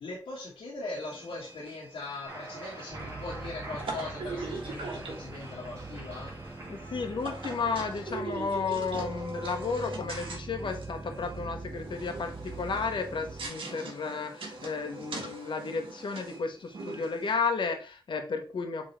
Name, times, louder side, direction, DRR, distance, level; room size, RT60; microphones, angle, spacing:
voice 1, 0.0-6.3, left 3 dB, 90° left, -5 dB, 1.8 m, -40 dB
sound 1, 0.9-17.4, right 2 dB, 75° right, 1.8 m, -42 dB
Cheering, 2.2-8.2, right 2 dB, 35° right, 2.8 m, -46 dB
sound 2, 2.9-13.5, right 3 dB, 20° right, 1.1 m, -43 dB
voice 2, 6.7-18.9, left 5 dB, 65° left, 4 dB, 1.3 m, -33 dB
7.7 x 3.8 x 3.4 m, 0.36 s
cardioid pair, 75°, 9 cm